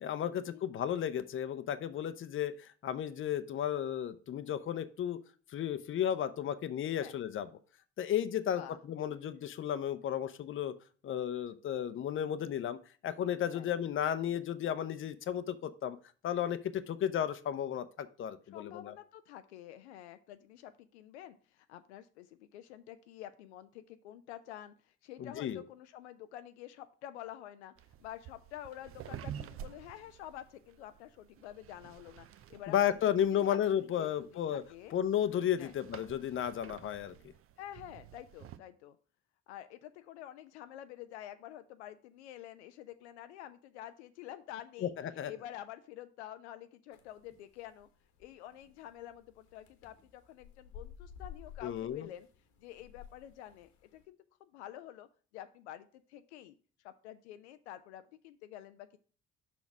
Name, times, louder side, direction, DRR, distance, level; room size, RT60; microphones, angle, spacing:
voice 1, 0.0-5.2 5.5-7.5 8.0-10.7 11.0-12.8 13.0-16.0 16.2-18.9 25.2-25.6 32.7-34.6 34.9-37.1 44.8-44.9 45.2-45.3 51.6-52.1, left 10 dB, 35° left, 12 dB, 0.7 m, -33 dB
voice 2, 18.5-27.7 28.0-33.0 33.3-34.9 35.6-35.7 37.6-39.0 39.5-44.9 45.3-47.9 48.2-52.3 52.6-56.5 56.8-59.0, left 12 dB, 75° left, 10 dB, 0.5 m, -49 dB
sound 1, 27.8-38.6, right 9 dB, 40° right, 0.6 m, -50 dB
sound 2, 46.9-54.1, left 8 dB, 60° left, 1.2 m, -54 dB
5.8 x 4.2 x 5.9 m, 0.41 s
figure-of-eight pair, 50°, 34 cm